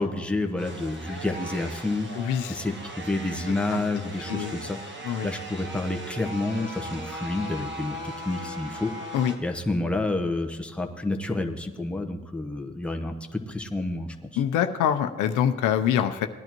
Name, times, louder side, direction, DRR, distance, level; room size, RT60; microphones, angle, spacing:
voice 1, 0.0-4.8 5.2-8.9 9.4-14.4, left 2 dB, 5° left, 3 dB, 1.0 m, -29 dB
sound 1, 0.6-9.4, right 1 dB, 40° right, 1.6 m, -38 dB
voice 2, 2.1-2.6 3.7-3.8 4.3-4.5 5.0-5.3 9.1-9.3 14.4-16.3, left 9 dB, 90° left, 8 dB, 0.7 m, -25 dB
19.0 x 10.5 x 3.0 m, 1.3 s
cardioid pair, 90°, 30 cm